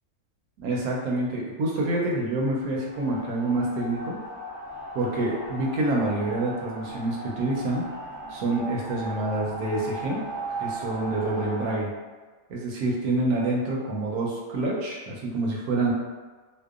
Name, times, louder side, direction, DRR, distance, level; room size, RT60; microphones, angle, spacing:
voice 1, 0.6-4.2 4.9-7.8 8.3-10.2 10.6-11.9 12.5-15.9, right 2 dB, 80° right, -3 dB, 1.1 m, -27 dB
sound 1, 2.6-11.7, right 1 dB, 50° right, 0.6 m, -37 dB
2.7 x 2.1 x 2.3 m, 1.4 s
omnidirectional pair, 1.5 m